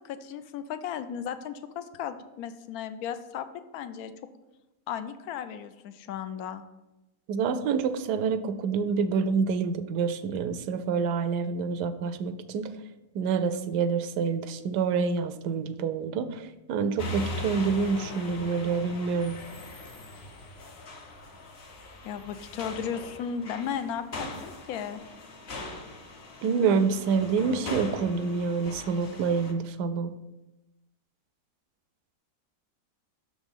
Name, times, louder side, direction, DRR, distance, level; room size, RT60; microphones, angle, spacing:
voice 1, 0.0-4.1 4.9-6.6 22.0-25.0, left 8 dB, 75° left, 11 dB, 1.1 m, -35 dB
voice 2, 7.3-12.7 13.1-19.4 26.4-30.1, right 5 dB, 90° right, 11 dB, 1.2 m, -27 dB
sound 1, 17.0-29.5, left 1 dB, 45° left, 1.0 m, -40 dB
6.5 x 5.0 x 5.4 m, 1.0 s
omnidirectional pair, 1.7 m